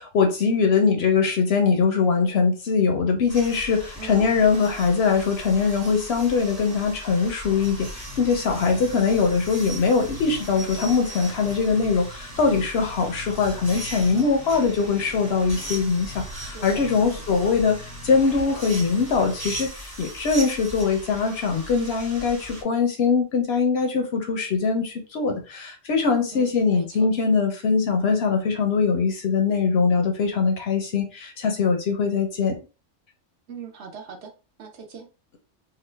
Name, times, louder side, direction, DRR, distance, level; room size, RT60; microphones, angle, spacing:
voice 1, 0.0-32.6, left 5 dB, 65° left, 0.7 m, -22 dB
sound 1, 3.3-22.6, right 1 dB, 15° right, 0.7 m, -38 dB
voice 2, 4.0-4.4 8.7-9.1 16.3-17.2 26.3-26.9 33.5-34.3 34.6-35.1, right 5 dB, 65° right, 0.9 m, -41 dB
sound 2, 7.5-19.7, left 2 dB, 90° left, 1.1 m, -44 dB
2.9 x 2.3 x 3.2 m
omnidirectional pair, 1.3 m